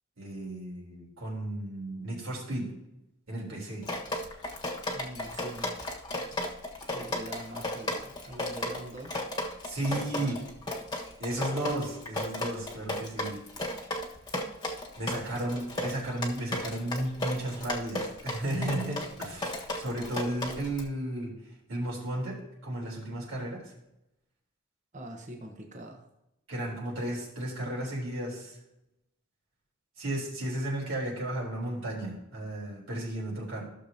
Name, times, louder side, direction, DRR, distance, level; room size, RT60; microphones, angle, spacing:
voice 1, 0.2-2.7 3.3-3.9 9.6-10.4 11.2-13.4 15.0-21.3 21.7-23.7 26.5-28.6 30.0-33.6, right 1 dB, 70° right, -4 dB, 3.7 m, -34 dB
Drip, 3.8-20.8, left 1 dB, 20° left, 1.4 m, -35 dB
voice 2, 4.9-5.7 6.9-9.5 9.8-10.4 15.3-15.7 24.9-26.1, right 1 dB, 35° right, 2 dB, 1.2 m, -44 dB
15.5 x 6.7 x 2.8 m, 0.88 s
head